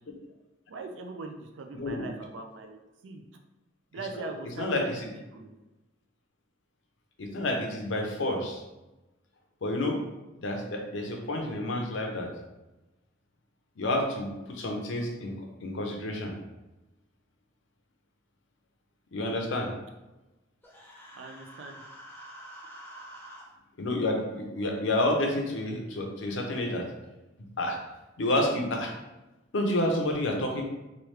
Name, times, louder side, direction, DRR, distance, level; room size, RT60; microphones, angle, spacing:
voice 1, 0.7-3.2 3.9-4.8 5.3-5.5 21.2-21.9, right 3 dB, 70° right, 5 dB, 0.4 m, -41 dB
voice 2, 1.7-2.1 4.2-4.3 4.6-5.0 7.2-8.6 9.6-10.0 10.4-12.3 13.8-16.3 19.1-19.7 23.8-26.9 27.6-27.8 28.2-28.9 29.5-30.6, left 1 dB, 70° left, 2 dB, 0.6 m, -29 dB
Human voice, 20.6-23.4, right 1 dB, 10° left, 0.6 m, -47 dB
3.1 x 2.3 x 3.1 m, 1.0 s
head